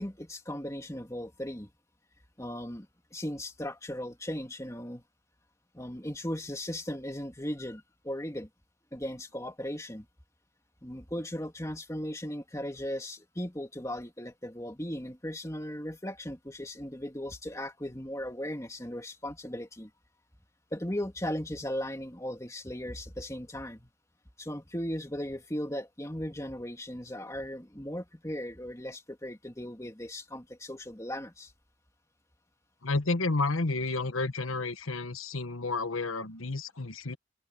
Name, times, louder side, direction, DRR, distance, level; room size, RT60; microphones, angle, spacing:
voice 1, 0.0-1.7 2.4-5.0 5.7-8.5 8.9-10.1 10.8-19.9 20.7-23.9 24.4-31.5, equal, 15° left, 2.6 m, -37 dB
voice 2, 32.8-37.2, left 3 dB, 90° left, 1.4 m, -31 dB
open air
head